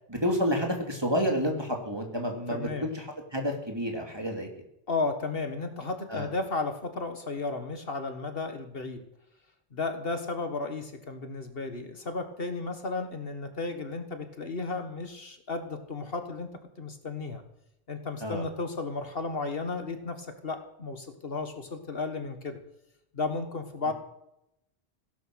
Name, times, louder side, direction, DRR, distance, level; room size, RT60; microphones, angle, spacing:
voice 1, 0.1-3.1 3.3-4.5 6.1-6.3 18.2-18.5, equal, 25° right, 2 dB, 3.0 m, -29 dB
voice 2, 2.5-2.9 4.9-9.0 9.7-16.5 16.8-17.4 17.9-22.6 23.1-23.9, left 3 dB, 65° left, 7 dB, 1.8 m, -34 dB
17.0 x 11.5 x 6.3 m, 0.80 s
omnidirectional pair, 1.1 m